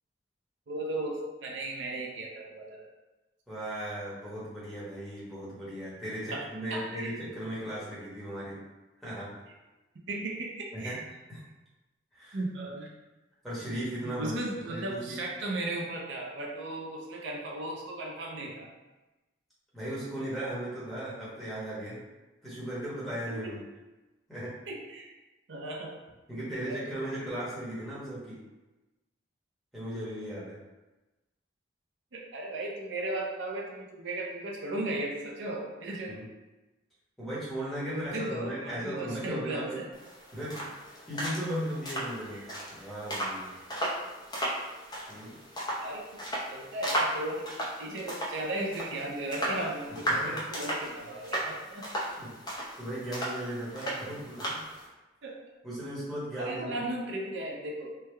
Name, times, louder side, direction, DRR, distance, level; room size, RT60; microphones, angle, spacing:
voice 1, 0.7-2.9 6.3-7.1 10.0-11.0 12.3-12.9 14.0-18.7 23.3-23.5 24.7-25.1 25.5-25.9 26.7-26.9 32.1-36.2 37.9-39.9 42.3-42.4 43.6-43.7 45.8-46.2 46.5-51.9 55.2-55.4 56.4-57.9, right 1 dB, 75° right, -1 dB, 0.5 m, -36 dB
voice 2, 3.5-8.6 9.0-9.3 10.7-11.0 11.3-11.4 12.1-12.4 13.4-14.3 14.6-15.2 19.7-22.0 22.4-23.6 24.3-24.5 26.3-28.4 29.7-30.6 36.1-36.2 37.2-39.8 40.3-40.7 41.1-42.4 42.7-43.5 45.1-45.3 50.0-50.4 51.7-51.9 52.2-54.8 55.6-56.8, right 1 dB, ahead, -10 dB, 1.1 m, -37 dB
sound 1, 39.9-54.9, right 1 dB, 20° left, 0.7 m, -35 dB
3.3 x 2.2 x 3.2 m, 1.1 s
head